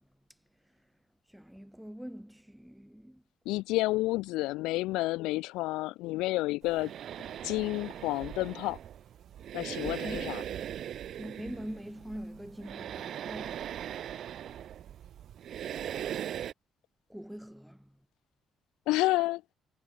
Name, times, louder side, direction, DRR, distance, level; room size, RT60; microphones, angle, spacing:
voice 1, 1.3-3.2 10.0-10.2 11.2-13.7 17.1-17.9, equal, ahead, 5.4 m, -43 dB
voice 2, 3.5-6.9 7.4-8.8 9.5-10.4 18.9-19.4, left 19 dB, 85° left, 0.5 m, -30 dB
sound 1, 6.6-16.5, right 10 dB, 65° right, 1.2 m, -40 dB
supercardioid pair, 70°, 0 cm